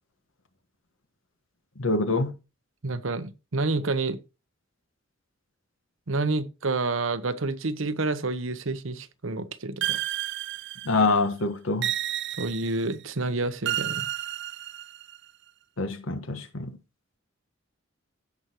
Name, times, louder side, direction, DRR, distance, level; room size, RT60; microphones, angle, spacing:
voice 1, 1.8-2.3 10.8-11.9 15.8-16.8, left 3 dB, 80° left, 1.4 m, -25 dB
voice 2, 2.8-4.2 6.1-10.0 12.4-14.1, right 3 dB, 80° right, 0.9 m, -29 dB
sound 1, 9.8-11.2 11.8-13.0 13.7-15.2, right 13 dB, 60° right, 0.4 m, -31 dB
15.5 x 6.2 x 3.0 m
head